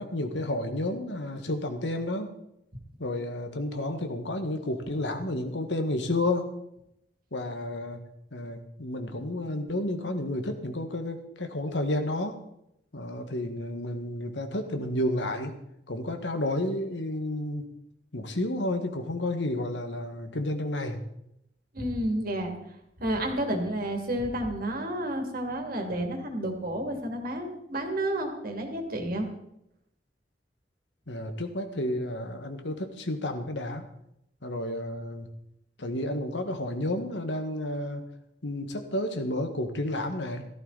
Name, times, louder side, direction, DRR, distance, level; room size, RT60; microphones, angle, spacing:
voice 1, 0.0-2.3 3.0-6.6 7.3-8.0 8.3-12.4 12.9-15.6 15.9-17.7 18.1-21.0 31.1-33.8 34.4-35.3 35.8-38.1 38.4-40.5, left 1 dB, 85° left, 6 dB, 1.9 m, -31 dB
voice 2, 21.7-22.5 23.0-29.3, right 1 dB, 55° right, 3 dB, 2.8 m, -30 dB
15.5 x 14.0 x 4.2 m, 0.78 s
head